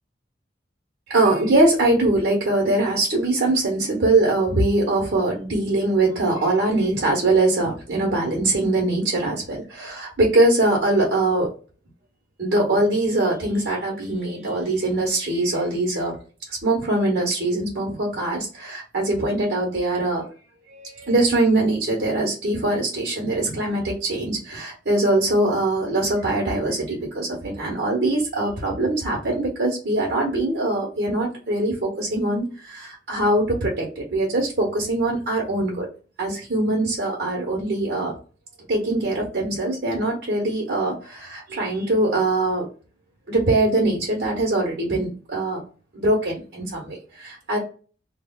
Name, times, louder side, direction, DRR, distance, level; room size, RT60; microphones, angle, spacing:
voice 1, 1.1-11.5 12.4-16.2 16.5-20.2 20.7-35.9 36.2-38.1 38.7-42.7 43.3-45.6 45.9-47.6, right 2 dB, 60° right, -3 dB, 1.0 m, -22 dB
3.1 x 2.1 x 2.2 m, 0.37 s
head